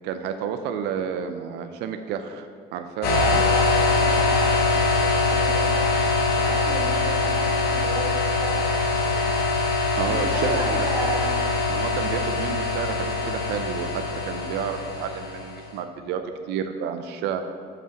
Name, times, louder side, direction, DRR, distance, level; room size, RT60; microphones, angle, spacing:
voice 1, 0.0-3.4 10.0-10.9 11.7-17.4, right 7 dB, 85° right, 7 dB, 0.5 m, -30 dB
sound 1, 3.0-15.6, left 3 dB, 70° left, 1.3 m, -23 dB
voice 2, 3.1-9.3 10.0-11.4, right 1 dB, 10° right, -4 dB, 2.2 m, -33 dB
7.3 x 5.6 x 5.8 m, 2.4 s
cardioid pair, 110°, 17 cm